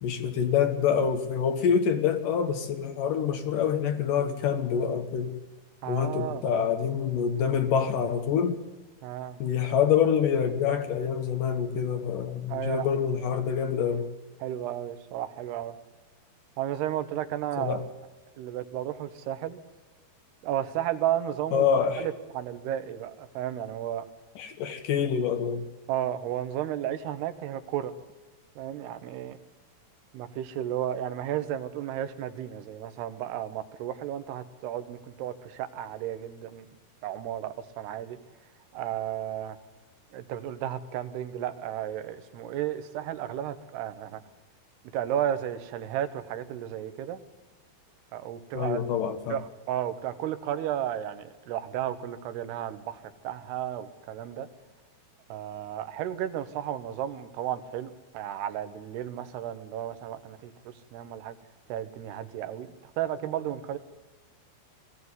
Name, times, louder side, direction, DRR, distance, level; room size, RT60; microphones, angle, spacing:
voice 1, 0.0-5.4 5.9-8.6 9.4-14.1 17.6-17.8 21.5-22.1 24.4-25.7 48.6-49.4, left 7 dB, 70° left, 8 dB, 2.3 m, -26 dB
voice 2, 5.8-6.6 9.0-9.4 12.5-12.9 14.4-15.8 16.6-17.8 18.4-19.6 20.4-21.7 22.0-24.0 25.9-27.9 28.6-29.4 30.1-36.7 37.0-38.2 38.7-39.6 40.1-44.2 44.9-47.2 48.1-48.8 49.3-54.5 55.3-61.3 61.7-63.8, right 11 dB, 80° right, 10 dB, 3.1 m, -33 dB
20.5 x 15.5 x 9.6 m, 1.2 s
omnidirectional pair, 4.6 m